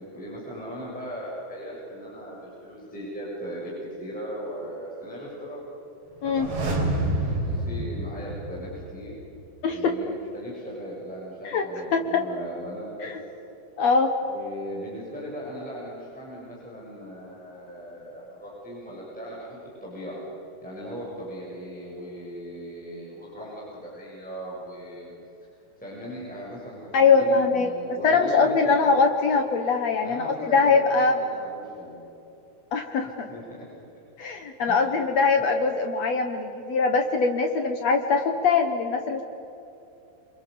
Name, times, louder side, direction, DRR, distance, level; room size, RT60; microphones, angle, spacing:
voice 1, 0.0-5.6 6.2-9.2 9.7-13.1 14.2-20.2 20.6-25.1 25.8-28.9 29.3-29.4 30.0-32.0 33.3-33.6 34.7-34.8 35.4-35.5, equal, ahead, -6 dB, 6.8 m, -38 dB
sound 1, 6.2-9.1 9.4-9.5, right 1 dB, 70° right, 6.1 m, -28 dB
voice 2, 9.6-9.9 11.4-11.6 11.9-12.2 13.0-13.2 13.8-14.1 26.9-27.7 28.0-31.1 32.7-33.3 34.2-39.2, left 4 dB, 75° left, 5 dB, 1.5 m, -22 dB
28.5 x 27.5 x 6.9 m, 2.9 s
omnidirectional pair, 5.0 m